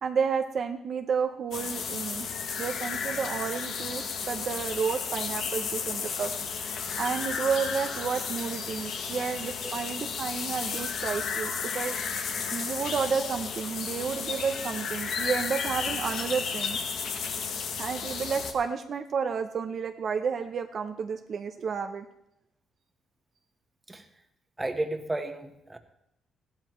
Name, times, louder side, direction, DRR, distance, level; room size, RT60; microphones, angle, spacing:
voice 1, 0.0-2.3 2.6-6.3 7.0-12.0 12.5-16.8 17.8-22.1, right 6 dB, 55° right, 6 dB, 0.6 m, -31 dB
sound 1, 1.5-18.5, left 6 dB, 70° left, 1.2 m, -33 dB
voice 2, 24.6-25.8, right 2 dB, 15° right, 6 dB, 1.2 m, -33 dB
14.5 x 12.0 x 3.1 m, 0.80 s
cardioid pair, 90°, 0 cm